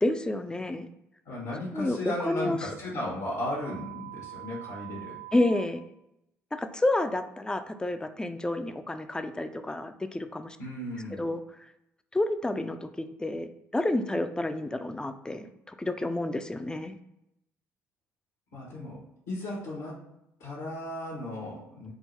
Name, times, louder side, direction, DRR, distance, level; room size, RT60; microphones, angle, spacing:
voice 1, 0.0-0.9 1.7-2.6 5.3-5.8 6.5-10.6 11.2-11.4 12.1-17.0, left 1 dB, 10° left, 8 dB, 0.4 m, -30 dB
voice 2, 1.2-5.2 10.6-11.3 18.5-19.0 19.3-20.0 20.4-21.9, left 1 dB, 80° left, -4 dB, 1.2 m, -35 dB
sound 1, 3.6-5.6, right 17 dB, 85° right, 0.5 m, -43 dB
3.8 x 2.0 x 4.3 m, 0.85 s
hypercardioid pair, 55°, 6 cm